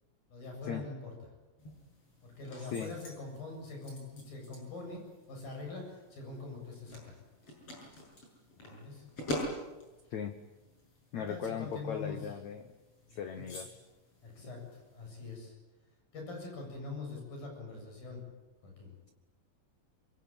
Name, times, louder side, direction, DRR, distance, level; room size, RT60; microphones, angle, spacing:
voice 1, 0.3-1.1 2.2-5.0 5.3-7.1 8.6-9.0 11.1-12.2 13.0-13.4 14.2-15.5 16.1-18.2 18.6-19.0, left 3 dB, 50° left, 2 dB, 9.4 m, -43 dB
sound 1, 1.6-15.3, left 1 dB, 30° left, 7.7 m, -46 dB
voice 2, 2.6-2.9 10.1-10.3 11.1-12.7 13.1-13.7, left 7 dB, 85° left, 7 dB, 1.6 m, -38 dB
25.0 x 22.5 x 9.0 m, 1.1 s
omnidirectional pair, 5.2 m